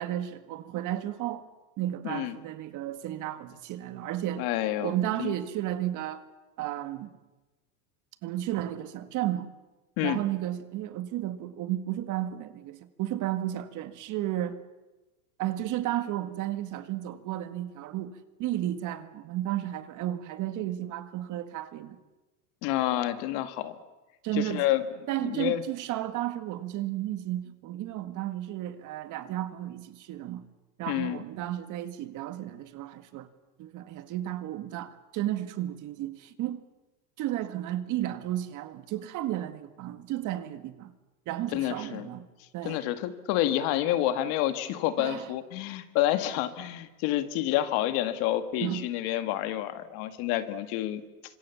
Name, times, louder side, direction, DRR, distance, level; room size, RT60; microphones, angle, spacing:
voice 1, 0.0-1.5 1.8-4.4 4.8-6.2 6.6-7.1 8.2-9.5 10.0-14.6 15.4-18.1 18.4-22.0 24.2-24.6 25.1-30.4 30.8-33.3 33.6-36.6 37.2-40.9 41.3-42.3 42.5-42.8 45.0-45.3 48.6-48.8, right 13 dB, 40° right, 1.9 m, -33 dB
voice 2, 2.0-2.4 4.4-4.9 5.2-5.4 10.0-10.2 22.6-23.8 24.3-24.9 25.2-25.6 30.9-31.2 41.5-42.1 42.6-51.0, left 13 dB, 55° left, 2.1 m, -28 dB
28.5 x 25.5 x 7.1 m
supercardioid pair, 135°, 45 cm